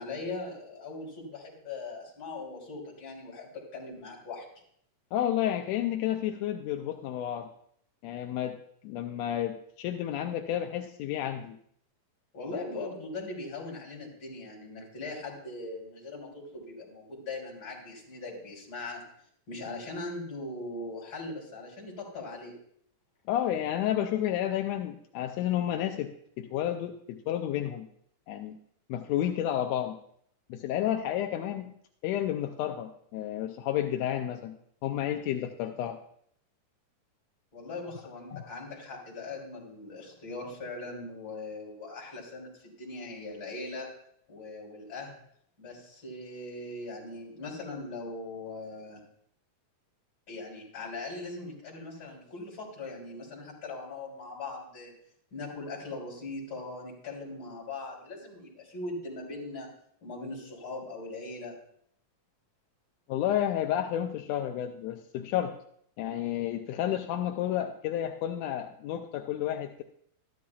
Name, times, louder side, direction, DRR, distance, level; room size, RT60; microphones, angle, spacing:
voice 1, 0.0-4.5 12.3-19.0 19.5-22.5 37.5-43.9 44.3-45.1 45.6-49.0 50.3-54.9 55.3-59.7 60.0-61.5, left 2 dB, 40° left, -3 dB, 3.8 m, -40 dB
voice 2, 5.1-7.5 8.0-8.6 8.8-11.6 23.3-26.1 26.4-27.9 28.3-28.5 28.9-30.0 30.5-31.7 32.0-34.5 34.8-36.0 38.3-38.5 63.1-65.5 66.0-69.8, left 11 dB, 80° left, 4 dB, 1.6 m, -31 dB
13.5 x 11.5 x 2.3 m, 0.67 s
omnidirectional pair, 3.4 m